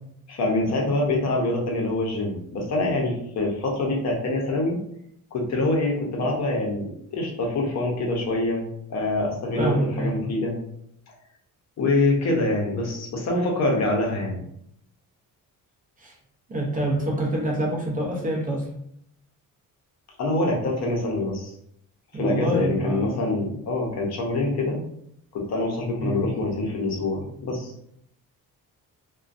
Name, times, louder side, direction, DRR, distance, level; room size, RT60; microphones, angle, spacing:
voice 1, 0.3-4.8 5.3-8.6 8.9-10.5 11.8-14.4 20.2-21.5 22.2-24.8 25.3-27.7, left 2 dB, 50° left, -1 dB, 0.7 m, -25 dB
voice 2, 9.6-10.1 16.0-16.2 16.5-18.7 22.1-23.3 26.0-26.2, right 1 dB, 25° right, -3 dB, 0.5 m, -26 dB
2.4 x 2.2 x 2.4 m, 0.72 s
cardioid pair, 155°, 34 cm